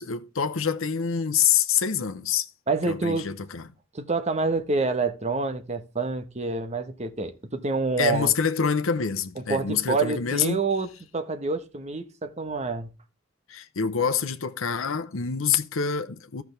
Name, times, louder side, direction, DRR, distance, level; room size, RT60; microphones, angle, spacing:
voice 1, 0.0-2.5 2.9-3.7 8.0-10.6 13.5-16.4, left 7 dB, 80° left, 0.8 m, -26 dB
voice 2, 2.7-3.3 3.9-8.3 9.4-10.9 11.1-12.9, right 3 dB, 35° right, 1.1 m, -27 dB
14.0 x 5.9 x 3.3 m
head